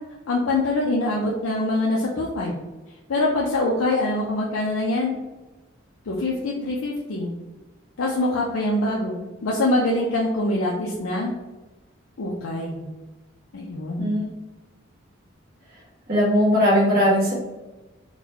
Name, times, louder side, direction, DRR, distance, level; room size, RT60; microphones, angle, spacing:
voice 1, 0.3-2.6 3.1-5.1 6.1-7.3 8.0-11.3 12.2-12.9 13.5-14.1, left 2 dB, 90° left, -3 dB, 0.5 m, -24 dB
voice 2, 16.1-17.3, equal, 45° right, -6 dB, 1.1 m, -19 dB
4.0 x 2.3 x 2.8 m, 1.1 s
head